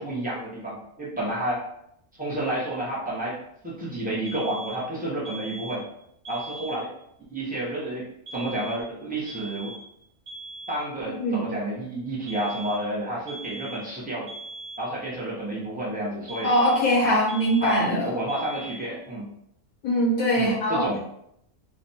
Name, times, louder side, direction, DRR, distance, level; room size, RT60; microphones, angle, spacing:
voice 1, 0.0-1.6 2.2-3.4 3.6-5.8 6.3-6.9 7.3-9.7 10.7-14.3 14.8-16.5 17.0-17.2 17.6-19.3 20.4-21.0, right 1 dB, 10° right, -6 dB, 0.4 m, -30 dB
sound 1, 4.3-4.9 5.3-5.9 6.3-6.9 8.3-8.9 9.3-9.9 10.3-10.9 12.3-12.9 13.3-13.9 14.3-14.9 16.3-17.0 17.3-18.0 18.3-19.0, right 2 dB, 55° right, 0.9 m, -40 dB
voice 2, 11.1-11.4 16.4-18.1 19.8-20.8, equal, 75° left, -5 dB, 1.3 m, -22 dB
3.2 x 2.1 x 2.7 m, 0.75 s
omnidirectional pair, 1.5 m